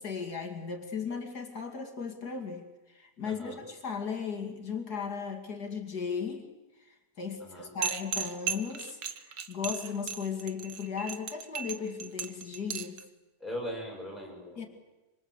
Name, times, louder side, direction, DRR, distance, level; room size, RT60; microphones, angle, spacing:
voice 1, 0.0-6.5 6.9-13.0 14.6-14.7, left 6 dB, 65° left, 4 dB, 2.9 m, -36 dB
voice 2, 3.2-3.6 7.4-7.7 13.4-14.7, equal, ahead, -2 dB, 7.7 m, -40 dB
sound 1, 7.8-13.0, right 7 dB, 80° right, 1.9 m, -35 dB
26.0 x 25.0 x 8.0 m, 1.1 s
omnidirectional pair, 1.8 m